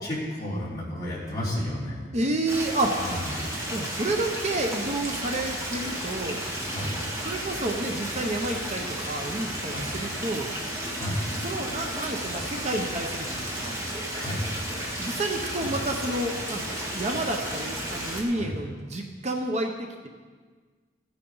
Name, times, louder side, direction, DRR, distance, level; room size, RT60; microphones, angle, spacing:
voice 1, 0.0-2.1 3.0-3.3 6.7-6.9 9.7-9.9 11.0-11.2 14.2-14.4 15.6-15.8 18.4-18.5, left 1 dB, 20° left, -8 dB, 3.6 m, -32 dB
voice 2, 2.1-3.0 3.7-6.4 7.2-10.5 11.4-13.8 15.0-20.1, right 2 dB, 40° right, 3 dB, 0.8 m, -30 dB
Stream, 2.5-18.2, right 1 dB, 15° right, 1.9 m, -33 dB
15.0 x 9.7 x 3.9 m, 1.5 s
head